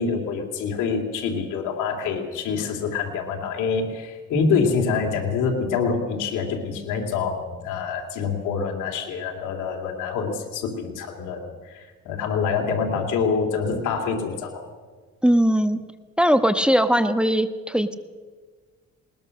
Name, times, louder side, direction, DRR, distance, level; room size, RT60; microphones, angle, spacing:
voice 1, 0.0-14.7, left 5 dB, 90° left, 1 dB, 2.8 m, -26 dB
voice 2, 15.2-15.8 16.2-17.9, equal, 5° right, 10 dB, 1.2 m, -19 dB
20.0 x 20.0 x 6.5 m, 1.5 s
cardioid pair, 90°, 30 cm